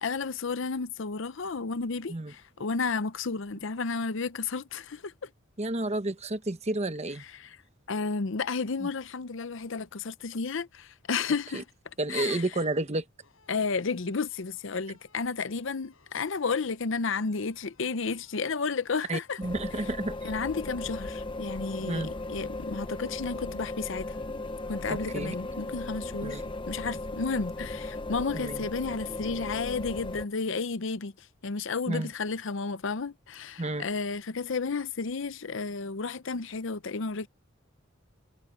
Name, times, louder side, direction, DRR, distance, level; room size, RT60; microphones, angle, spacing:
voice 1, 0.0-5.3 7.2-7.6 7.9-11.6 12.1-12.4 13.5-19.4 20.2-24.2 24.7-31.1 31.4-37.3, left 4 dB, 65° left, 0.7 m, -32 dB
voice 2, 5.6-7.2 8.8-8.9 11.5-11.6 12.0-13.0 19.1-20.3 21.9-22.1 24.9-25.3 26.2-26.4 28.3-28.6 31.9-32.1 33.6-33.8, right 2 dB, 35° right, 1.1 m, -31 dB
sound 1, 13.2-26.3, left 5 dB, 85° left, 4.9 m, -63 dB
sound 2, 19.4-30.3, left 2 dB, 25° left, 0.7 m, -37 dB
head